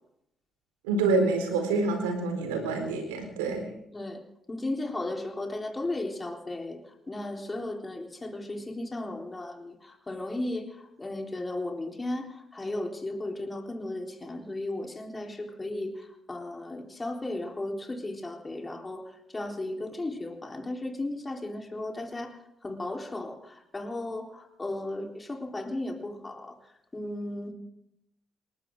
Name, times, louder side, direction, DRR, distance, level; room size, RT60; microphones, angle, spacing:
voice 1, 0.8-3.7, right 3 dB, 75° right, 4 dB, 4.3 m, -27 dB
voice 2, 4.5-6.8 7.1-26.6 26.9-27.5, left 2 dB, 25° left, 2 dB, 3.7 m, -35 dB
28.5 x 13.0 x 3.8 m, 0.78 s
figure-of-eight pair, 45°, 0 cm